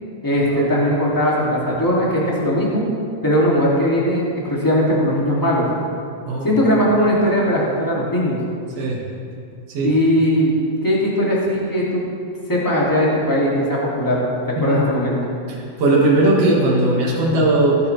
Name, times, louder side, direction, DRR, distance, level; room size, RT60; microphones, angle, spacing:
voice 1, 0.2-2.8 3.2-5.6 6.4-8.4 9.8-12.0 12.5-14.2 14.6-15.1, equal, 5° left, -6 dB, 2.3 m, -19 dB
voice 2, 15.5-17.8, right 2 dB, 55° right, -4 dB, 3.0 m, -18 dB
18.0 x 9.4 x 3.4 m, 2.4 s
omnidirectional pair, 3.4 m